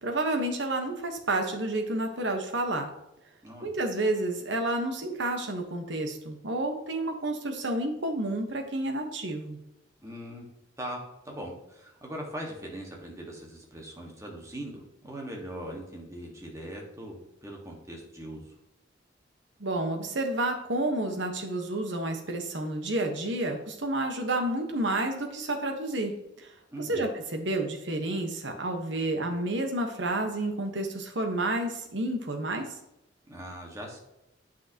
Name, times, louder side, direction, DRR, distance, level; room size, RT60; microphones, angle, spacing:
voice 1, 0.0-2.9 3.6-9.6 19.6-26.1 26.4-26.5 26.8-32.7, right 1 dB, 65° right, 4 dB, 1.2 m, -30 dB
voice 2, 3.4-3.7 10.0-10.4 10.8-18.5 26.7-27.1 33.3-34.0, equal, 15° right, 0 dB, 1.6 m, -40 dB
9.2 x 5.7 x 2.9 m, 0.88 s
head